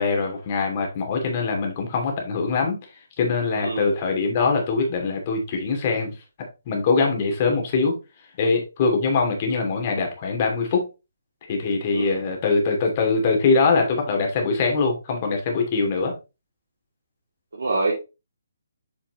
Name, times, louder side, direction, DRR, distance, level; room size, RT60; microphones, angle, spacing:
voice 1, 0.0-2.8 3.2-6.1 6.7-8.0 8.4-10.9 11.5-16.1, left 4 dB, 35° left, 2.5 m, -22 dB
voice 2, 17.5-17.9, right 3 dB, 65° right, 2.8 m, -25 dB
7.9 x 5.7 x 3.0 m
figure-of-eight pair, 140°, 0 cm